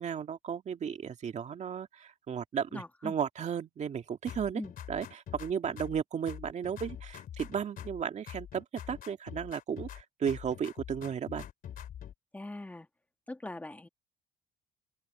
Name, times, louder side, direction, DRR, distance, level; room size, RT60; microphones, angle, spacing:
voice 1, 0.0-4.6 4.9-11.5, right 7 dB, 45° right, 2.1 m, -34 dB
voice 2, 2.7-3.2 4.5-4.7 12.3-12.9 13.3-13.9, left 2 dB, 10° left, 1.9 m, -41 dB
sound 1, 4.3-6.0 6.3-8.0 8.3-10.0 10.3-12.1, left 10 dB, 55° left, 3.2 m, -45 dB
open air
cardioid pair, 110°, 17 cm